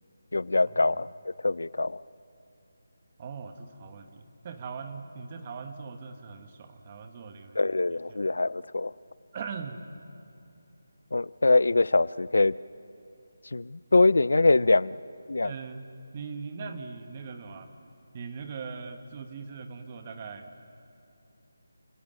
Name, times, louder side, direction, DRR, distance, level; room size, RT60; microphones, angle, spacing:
voice 1, 0.3-2.0 7.6-8.9 11.1-12.6 13.5-15.0 15.3-15.5, left 2 dB, 75° left, 20 dB, 0.5 m, -23 dB
voice 2, 3.2-7.6 8.1-8.2 9.3-9.8 15.4-17.7 18.1-20.5, right 5 dB, 20° right, 7 dB, 1.1 m, -40 dB
29.0 x 16.5 x 7.5 m, 2.7 s
figure-of-eight pair, 175°, 0 cm